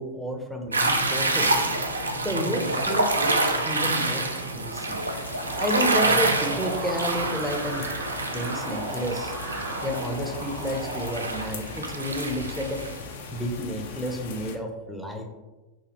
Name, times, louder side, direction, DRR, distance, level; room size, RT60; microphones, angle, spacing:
voice 1, 0.0-1.6 2.2-5.0 5.6-7.9 8.3-9.3 9.8-12.8 13.3-15.3, equal, ahead, 2 dB, 0.6 m, -31 dB
sound 1, 0.7-13.0, right 2 dB, 80° right, 0.4 m, -27 dB
sound 2, 4.9-14.6, left 4 dB, 55° left, 0.4 m, -40 dB
sound 3, 5.5-11.0, right 2 dB, 55° right, 0.8 m, -36 dB
3.0 x 2.7 x 4.0 m, 1.1 s
figure-of-eight pair, 90°, 0 cm